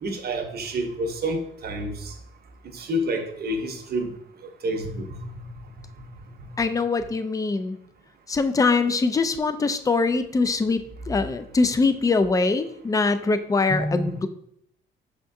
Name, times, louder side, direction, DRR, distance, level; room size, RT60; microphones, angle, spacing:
voice 1, 0.0-2.1 2.7-4.1 4.6-5.1 13.7-14.1, right 1 dB, 50° right, 5 dB, 0.8 m, -28 dB
voice 2, 6.6-7.8 8.3-14.3, left 3 dB, 15° left, 11 dB, 0.3 m, -23 dB
5.5 x 3.6 x 2.6 m, 0.72 s
cardioid pair, 90°, 20 cm